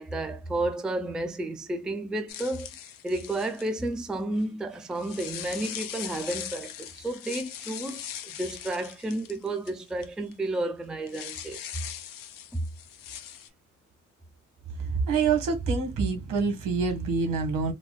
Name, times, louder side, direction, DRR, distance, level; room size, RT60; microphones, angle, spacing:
voice 1, 0.0-2.7 3.0-11.8 12.5-12.6, right 2 dB, ahead, 0.3 m, -32 dB
sound 1, 2.3-3.9 4.9-10.0 10.3-10.4 11.1-13.5, left 10 dB, 80° left, 0.6 m, -40 dB
voice 2, 14.8-17.7, right 5 dB, 80° right, 1.4 m, -26 dB
4.0 x 2.2 x 2.3 m
cardioid pair, 140°, 32 cm